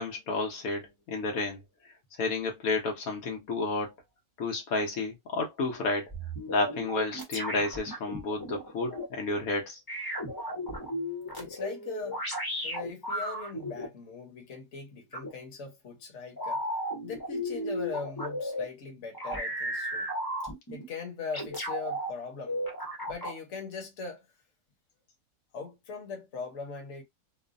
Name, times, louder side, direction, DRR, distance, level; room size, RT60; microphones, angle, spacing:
voice 1, 0.0-1.6 2.2-3.9 4.4-6.1 6.5-9.8, left 3 dB, 80° left, 1.3 m, -31 dB
sound 1, 6.1-9.1 9.9-13.9 15.1-15.3 16.4-18.6 19.1-20.8 21.3-22.1 22.5-23.4, equal, 20° left, 0.7 m, -34 dB
voice 2, 11.4-12.2 12.6-16.6 17.0-20.1 20.7-22.6 23.1-24.3 25.5-27.0, left 5 dB, 60° left, 1.2 m, -40 dB
3.0 x 2.1 x 2.5 m
omnidirectional pair, 1.5 m